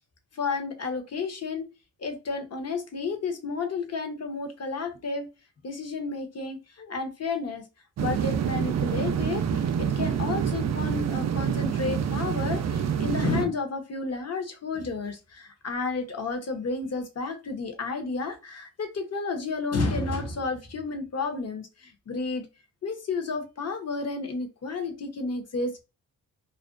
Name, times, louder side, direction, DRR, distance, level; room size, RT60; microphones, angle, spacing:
voice 1, 0.3-1.6 2.0-5.3 5.6-7.7 8.0-22.5 22.8-25.8, left 4 dB, 45° left, 0.8 m, -31 dB
sound 1, 8.0-13.4, right 8 dB, 50° right, 0.4 m, -27 dB
2.4 x 2.1 x 2.4 m
cardioid pair, 55°, 35 cm